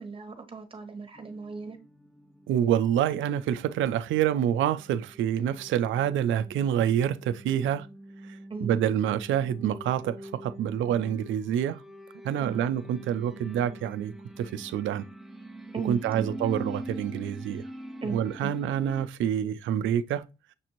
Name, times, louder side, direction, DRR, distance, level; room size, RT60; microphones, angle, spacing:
voice 1, 0.0-1.8 8.5-8.8 12.4-12.7 15.7-16.3 18.0-18.5, right 4 dB, 25° right, 1.1 m, -37 dB
sound 1, 1.2-19.1, right 1 dB, ahead, 0.4 m, -44 dB
voice 2, 2.5-7.9 8.3-11.8 12.2-15.1 15.8-17.6 18.0-20.2, right 10 dB, 75° right, 0.4 m, -27 dB
6.7 x 2.6 x 2.9 m
cardioid pair, 90°, 20 cm